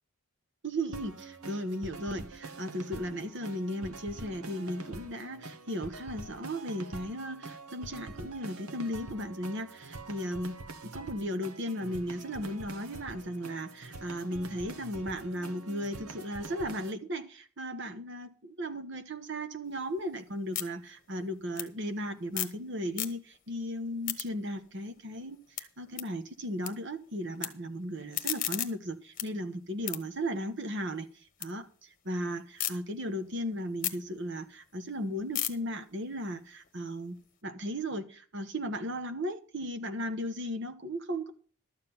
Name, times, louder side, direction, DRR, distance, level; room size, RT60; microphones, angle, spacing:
voice 1, 0.6-10.6 10.8-31.1 31.4-37.2 37.4-41.3, equal, 55° right, 9 dB, 1.1 m, -36 dB
sound 1, 0.9-16.9, right 3 dB, 85° right, 1.3 m, -45 dB
sound 2, 19.7-22.6 22.9-23.5 23.8-26.7 27.0-27.5 27.9-31.5 31.9-32.7 33.2-37.3, left 12 dB, 35° left, 1.1 m, -38 dB
12.5 x 7.5 x 5.9 m, 0.42 s
head